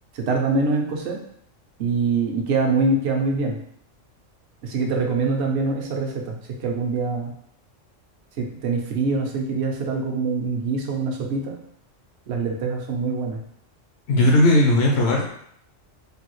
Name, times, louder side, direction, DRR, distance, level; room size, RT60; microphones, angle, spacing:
voice 1, 0.1-1.2 1.8-3.6 4.6-7.3 8.4-11.6 12.3-13.4, right 4 dB, 65° right, 1 dB, 0.8 m, -24 dB
voice 2, 14.1-15.3, left 1 dB, 65° left, -1 dB, 0.7 m, -17 dB
3.3 x 2.3 x 3.0 m, 0.68 s
omnidirectional pair, 1.3 m